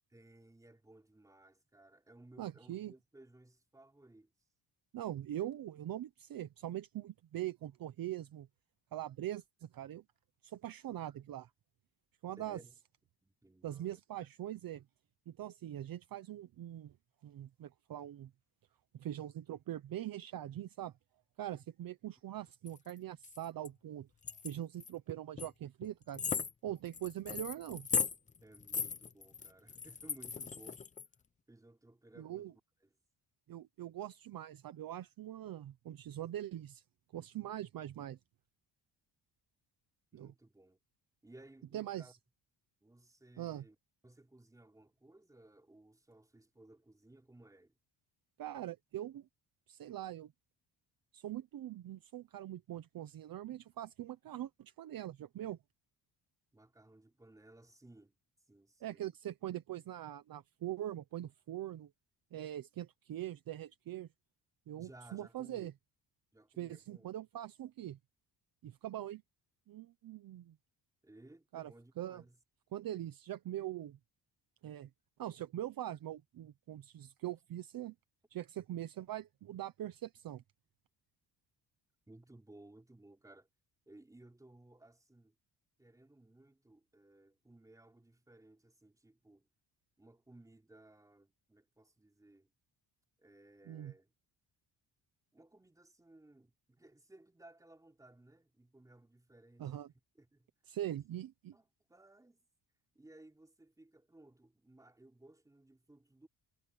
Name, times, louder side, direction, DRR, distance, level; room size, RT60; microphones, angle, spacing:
voice 1, 0.1-4.3 12.4-12.7 13.2-14.0 28.4-30.8 31.5-33.0 40.1-40.8 41.2-42.1 42.8-43.8 44.0-47.7 56.5-58.1 58.5-59.0 64.8-65.7 66.3-67.2 71.0-72.4 82.1-83.5 83.9-85.4 85.8-89.5 90.0-92.5 93.2-94.1 95.3-99.8 100.2-100.5 100.9-101.0 101.5-102.4 103.0-106.3, right 2 dB, 10° right, 3.6 m, -60 dB
voice 2, 2.4-2.9 4.9-8.5 8.9-10.0 10.4-11.5 12.2-12.6 13.6-14.8 15.3-16.9 17.2-18.3 18.9-20.9 21.4-24.1 24.4-26.2 26.6-27.9 32.2-32.5 33.5-36.8 37.1-38.2 40.1-40.3 41.7-42.2 43.4-43.6 48.4-49.3 49.7-50.3 51.1-55.6 58.8-61.9 62.3-64.1 64.7-65.7 66.6-68.0 68.6-69.2 69.7-70.6 71.5-71.7 72.0-72.2 72.7-74.0 74.6-74.9 75.2-77.9 78.3-80.4 93.7-93.9 99.6-99.9 100.7-101.5, right 12 dB, 50° right, 0.9 m, -42 dB
sound 1, 22.7-22.9 23.2-23.7 24.2-24.9 25.4-25.5 25.8-25.9 26.1-31.1, left 5 dB, 20° left, 0.5 m, -38 dB
cardioid pair, 180°, 44 cm